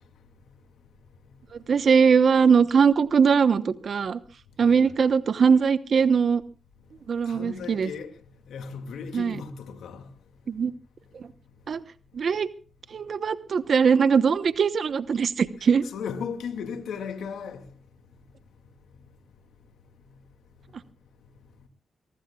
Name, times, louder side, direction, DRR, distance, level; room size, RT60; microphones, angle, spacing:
voice 1, 1.7-4.2 4.6-6.4 7.1-7.9 9.1-9.3 10.5-10.7 11.1-11.3 11.7-11.8 12.1-12.5 12.9-15.8, right 6 dB, 60° right, 1.0 m, -21 dB
voice 2, 4.6-4.9 7.3-8.1 8.5-10.0 15.8-17.6, left 6 dB, 75° left, 2.3 m, -36 dB
23.0 x 20.0 x 2.4 m
supercardioid pair, 50°, 0 cm